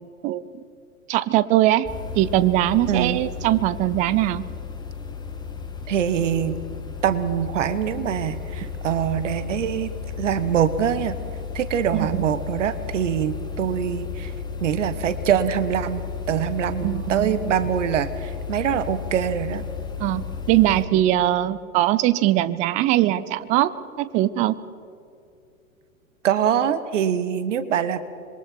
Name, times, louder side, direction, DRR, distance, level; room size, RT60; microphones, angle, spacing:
voice 1, 0.2-0.6 1.1-1.9 2.2-4.4 11.9-12.2 16.8-17.4 20.0-23.7 24.0-24.5, right 14 dB, 20° right, 17 dB, 0.5 m, -21 dB
sound 1, 1.8-20.8, left 6 dB, 10° left, 2.0 m, -33 dB
voice 2, 2.9-3.2 5.9-6.6 7.0-9.9 10.2-11.2 11.5-14.3 14.6-16.0 16.3-19.6 26.2-28.0, right 9 dB, 55° right, 13 dB, 1.4 m, -24 dB
26.5 x 23.0 x 4.5 m, 2.6 s
figure-of-eight pair, 105°, 43 cm